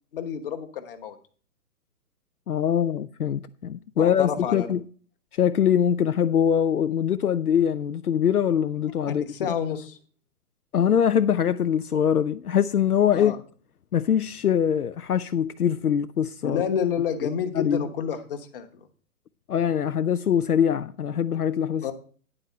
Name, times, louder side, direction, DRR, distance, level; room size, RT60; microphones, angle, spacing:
voice 1, 0.1-1.2 4.0-4.7 9.1-10.0 13.1-13.4 16.4-18.7 21.8-21.9, left 8 dB, 35° left, 1.1 m, -29 dB
voice 2, 2.5-4.8 5.3-9.5 10.7-13.3 13.9-16.6 17.5-17.8 19.5-21.9, left 8 dB, 75° left, 0.6 m, -23 dB
9.9 x 4.2 x 6.6 m
figure-of-eight pair, 125°, 45 cm